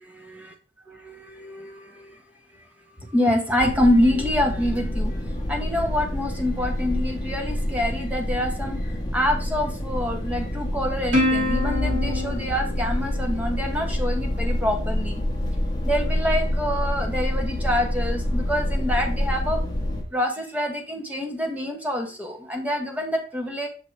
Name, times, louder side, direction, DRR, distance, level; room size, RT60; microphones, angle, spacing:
voice 1, 1.0-2.2 3.0-15.2 15.8-19.6 20.1-23.7, left 1 dB, 10° right, 3 dB, 0.9 m, -26 dB
sound 1, 3.6-20.0, left 1 dB, 25° left, 0.9 m, -27 dB
Plucked string instrument, 11.1-13.9, left 1 dB, 45° right, 2.6 m, -26 dB
6.2 x 3.7 x 4.5 m, 0.37 s
head